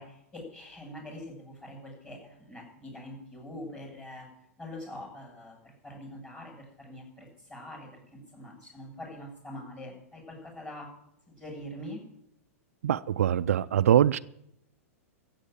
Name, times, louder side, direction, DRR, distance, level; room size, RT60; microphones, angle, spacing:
voice 1, 0.0-4.3 4.6-10.9 11.3-12.0, left 1 dB, 15° left, 7.7 m, -44 dB
voice 2, 12.8-14.2, right 10 dB, 75° right, 0.5 m, -23 dB
14.5 x 8.1 x 9.1 m
hypercardioid pair, 105°, 8 cm